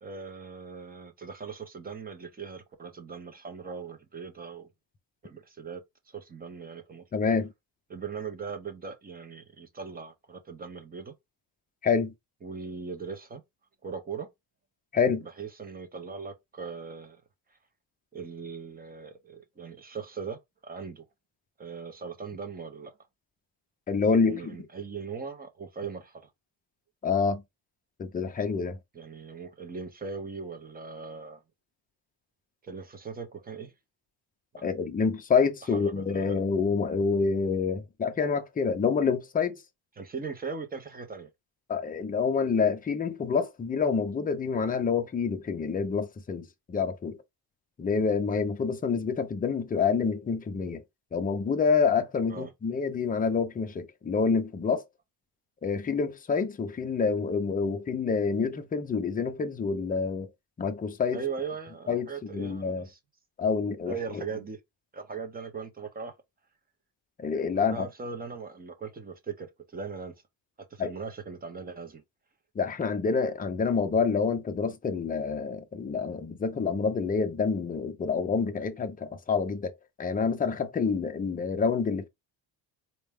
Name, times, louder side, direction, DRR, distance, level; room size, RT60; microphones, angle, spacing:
voice 1, 0.0-4.7 5.2-7.0 7.9-11.1 12.4-13.4 13.8-14.3 15.2-17.2 18.1-21.1 21.6-22.9 24.2-26.3 28.9-31.4 32.6-33.7 34.6-34.7 35.7-36.4 40.0-41.3 52.3-52.5 61.1-63.0 63.9-64.6 64.9-66.1 67.5-70.1 70.7-72.0, right 5 dB, 20° right, 0.6 m, -39 dB
voice 2, 7.1-7.5 11.8-12.1 14.9-15.3 23.9-24.4 27.0-27.4 28.0-28.8 34.6-39.6 41.7-47.2 47.8-50.8 51.1-54.8 55.6-60.3 60.6-61.2 61.9-62.9 63.4-64.2 67.2-67.9 70.8-70.9 72.6-79.7 80.0-82.1, left 5 dB, 20° left, 0.4 m, -27 dB
4.2 x 2.2 x 3.4 m
cardioid pair, 155°, 45 cm